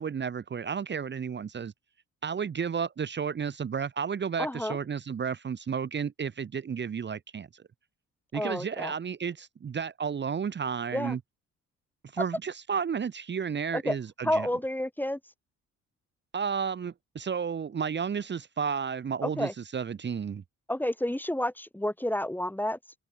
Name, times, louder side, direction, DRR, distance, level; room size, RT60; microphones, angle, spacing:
voice 1, 0.0-1.7 2.2-7.6 8.3-11.2 12.1-14.5 16.3-20.4, right 6 dB, 35° right, 1.1 m, -32 dB
voice 2, 4.4-4.8 8.3-8.9 10.9-11.2 13.7-14.0 14.2-15.2 19.2-19.5 20.7-22.8, left 1 dB, 5° left, 1.5 m, -30 dB
open air
cardioid pair, 90°, 30 cm